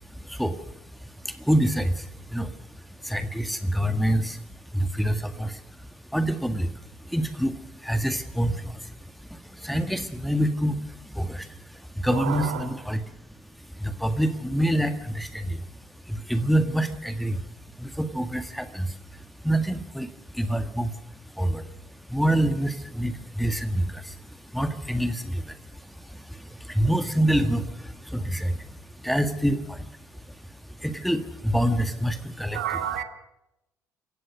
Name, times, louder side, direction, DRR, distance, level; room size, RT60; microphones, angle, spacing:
voice 1, 0.0-17.5 17.7-32.6, right 1 dB, ahead, 9 dB, 1.8 m, -27 dB
voice 2, 12.1-12.7 32.5-33.0, right 10 dB, 75° right, 9 dB, 1.6 m, -30 dB
28.0 x 16.5 x 6.4 m, 0.89 s
figure-of-eight pair, 50°, 9 cm